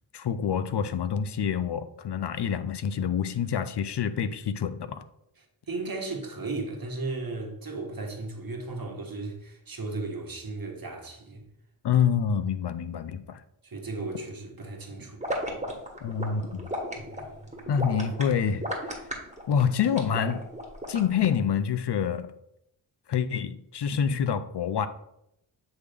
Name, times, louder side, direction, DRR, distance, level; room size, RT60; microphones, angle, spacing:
voice 1, 0.1-5.0 11.8-13.4 16.0-16.7 17.7-18.9 19.5-20.4 20.9-22.3 23.1-24.9, left 7 dB, 60° left, 0.5 m, -27 dB
voice 2, 5.7-11.4 13.6-15.2 16.9-17.6, right 3 dB, 45° right, 1.4 m, -35 dB
sound 1, 15.2-21.3, equal, 15° right, 1.5 m, -34 dB
8.0 x 3.4 x 3.5 m
cardioid pair, 45°, 46 cm